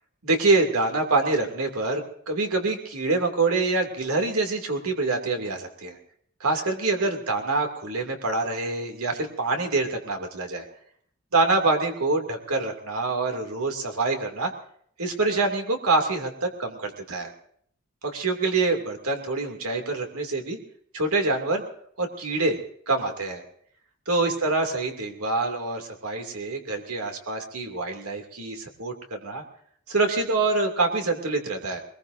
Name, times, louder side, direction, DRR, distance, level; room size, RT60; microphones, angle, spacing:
voice 1, 0.2-6.0 6.4-10.7 11.3-14.5 15.0-17.3 18.0-20.6 20.9-21.6 22.0-22.6 22.9-23.4 24.1-29.4 29.9-31.8, right 3 dB, 85° right, 4 dB, 2.6 m, -26 dB
22.0 x 21.0 x 2.7 m, 0.63 s
head